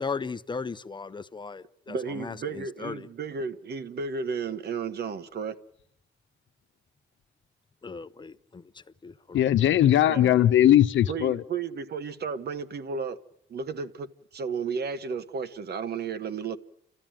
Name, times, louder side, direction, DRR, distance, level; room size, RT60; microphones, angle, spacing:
voice 1, 0.0-3.1 7.8-9.4, left 5 dB, 25° left, 0.8 m, -37 dB
voice 2, 1.9-5.6 10.1-10.4 11.1-13.2 13.5-14.1 14.3-16.6, right 5 dB, 55° right, 1.4 m, -33 dB
voice 3, 9.3-11.4, left 11 dB, 75° left, 1.0 m, -19 dB
30.0 x 13.5 x 9.1 m
cardioid pair, 90°, 20 cm